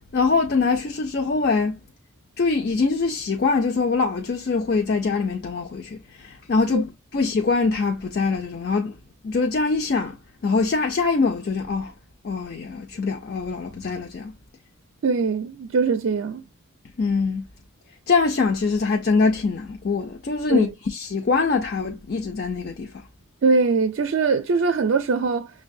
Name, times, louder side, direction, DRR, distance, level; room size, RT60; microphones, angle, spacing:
voice 1, 0.1-1.8 2.4-9.0 9.2-11.9 12.2-14.4 17.0-17.5 18.1-23.0, left 4 dB, 45° left, 0.4 m, -23 dB
voice 2, 15.0-16.4 20.5-20.7 23.4-25.5, right 4 dB, 65° right, 0.4 m, -22 dB
6.0 x 2.2 x 2.6 m
head